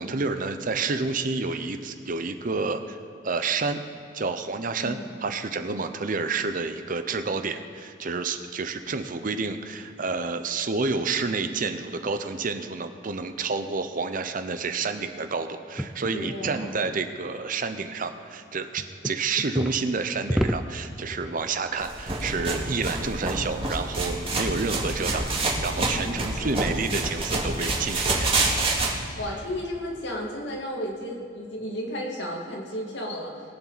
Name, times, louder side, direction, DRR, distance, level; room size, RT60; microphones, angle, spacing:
voice 1, 0.0-3.0 3.2-3.8 4.1-28.5, right 4 dB, 45° right, 8 dB, 0.7 m, -29 dB
voice 2, 4.8-5.1 16.1-16.7 26.3-26.6 29.2-33.3, equal, 65° left, -1 dB, 2.4 m, -33 dB
sound 1, 15.8-16.6 18.8-19.8 20.3-21.3, equal, ahead, 0.4 m, -29 dB
sound 2, 21.8-28.9, right 2 dB, 30° right, 2.1 m, -27 dB
21.5 x 7.4 x 4.1 m, 2.6 s
head